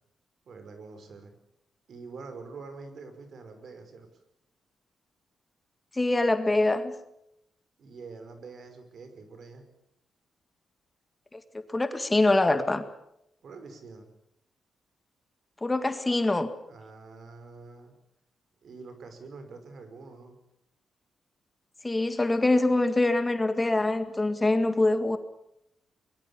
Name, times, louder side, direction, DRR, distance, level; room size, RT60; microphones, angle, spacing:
voice 1, 0.5-1.3 1.9-4.2 7.8-9.6 13.4-14.1 16.6-17.9 18.6-20.4, right 4 dB, 60° right, 8 dB, 5.4 m, -45 dB
voice 2, 5.9-6.9 11.3-12.8 15.6-16.5 21.8-25.2, left 2 dB, 15° left, 9 dB, 1.9 m, -24 dB
23.0 x 22.0 x 7.1 m, 0.78 s
cardioid pair, 110°, 0 cm